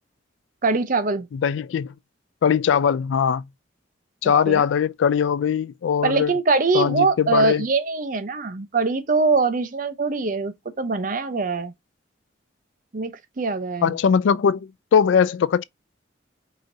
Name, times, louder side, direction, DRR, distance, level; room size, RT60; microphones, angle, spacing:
voice 1, 0.6-1.3 4.5-4.6 6.0-11.7 12.9-13.9, right 3 dB, 45° right, 0.6 m, -23 dB
voice 2, 1.3-1.9 2.4-3.4 4.2-6.3 6.7-7.6 13.8-15.6, left 7 dB, 75° left, 0.3 m, -20 dB
4.9 x 2.8 x 2.6 m
head